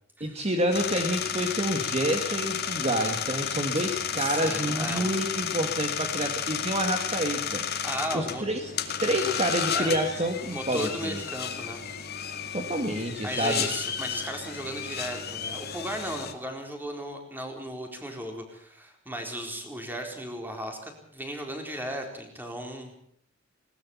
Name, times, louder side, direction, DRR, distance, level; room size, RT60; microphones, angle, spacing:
voice 1, 0.2-7.6 8.1-8.6 9.0-11.2 12.5-13.7, right 1 dB, 35° right, 4 dB, 1.8 m, -28 dB
sound 1, 0.7-16.3, left 7 dB, 55° left, 2.1 m, -32 dB
voice 2, 4.2-5.1 7.8-8.4 9.2-9.3 9.7-9.9 10.5-11.8 13.2-22.9, right 1 dB, 10° right, 3 dB, 4.3 m, -36 dB
20.0 x 19.0 x 7.2 m, 0.64 s
head